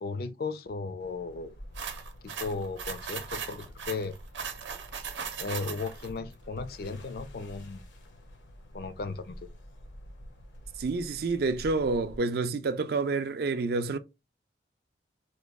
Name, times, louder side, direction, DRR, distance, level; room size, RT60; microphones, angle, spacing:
voice 1, 0.0-1.5 2.2-4.1 5.4-7.8 8.7-9.3, left 4 dB, 55° left, 0.4 m, -36 dB
sound 1, 1.0-12.2, equal, 85° left, 0.8 m, -48 dB
sound 2, 1.8-6.1, right 6 dB, 90° right, 0.6 m, -38 dB
voice 2, 10.8-14.0, right 3 dB, 55° right, 0.4 m, -28 dB
2.9 x 2.2 x 3.4 m
head